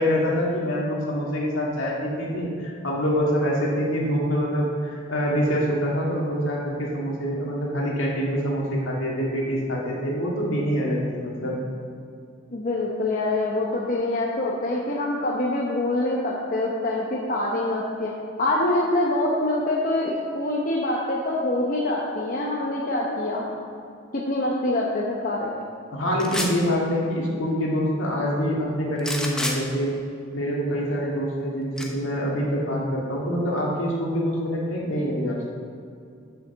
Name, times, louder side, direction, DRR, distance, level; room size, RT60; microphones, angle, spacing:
voice 1, 0.0-11.6 25.9-29.9 30.3-35.5, equal, 70° left, -3 dB, 1.9 m, -25 dB
voice 2, 12.5-18.1 18.4-23.5 24.1-25.5, left 2 dB, 40° left, -4 dB, 0.9 m, -25 dB
sound 1, 26.2-26.6 29.0-29.6 31.8-31.9, left 1 dB, 5° left, 0.8 m, -28 dB
6.9 x 6.0 x 6.8 m, 2.4 s
head